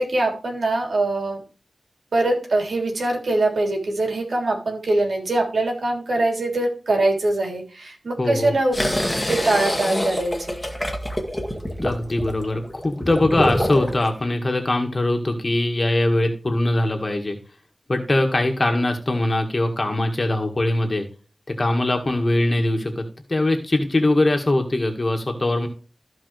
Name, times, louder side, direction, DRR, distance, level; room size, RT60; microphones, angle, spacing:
voice 1, 0.0-1.4 2.1-8.7 9.3-10.6, right 2 dB, 85° right, 1 dB, 3.4 m, -23 dB
voice 2, 8.2-8.5 11.8-17.4 17.9-21.1 21.5-25.7, left 1 dB, 40° left, 3 dB, 1.9 m, -22 dB
sound 1, 8.7-14.1, equal, 5° left, 2.0 m, -26 dB
15.0 x 5.3 x 3.3 m, 0.36 s
wide cardioid pair, 85°, 0 cm